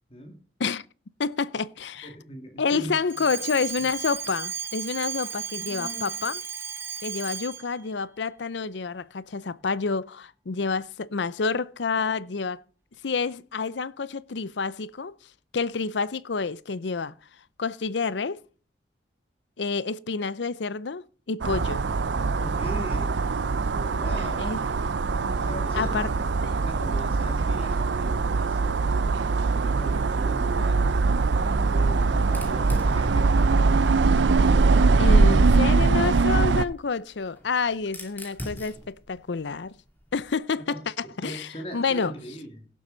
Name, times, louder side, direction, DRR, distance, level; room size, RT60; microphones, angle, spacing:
voice 1, 0.1-0.4 2.0-3.2 3.8-3.9 5.5-6.1 22.4-23.3 23.7-24.7 25.3-26.3 26.6-30.9 31.3-34.2 40.7-40.8 41.0-42.7, equal, 30° left, 2.3 m, -40 dB
voice 2, 1.2-2.1 2.6-6.4 7.0-12.6 13.0-15.1 15.5-17.2 17.6-18.4 19.6-21.8 24.4-24.6 25.2-25.5 25.7-26.1 35.0-39.7 40.1-42.1, left 4 dB, 80° left, 0.6 m, -28 dB
Alarm, 3.1-7.7, right 7 dB, 15° right, 1.1 m, -34 dB
sound 1, 21.4-36.7, right 4 dB, 80° right, 0.5 m, -22 dB
Fire, 32.2-35.0 36.1-40.4, left 1 dB, 10° left, 2.4 m, -44 dB
17.0 x 7.5 x 3.9 m
head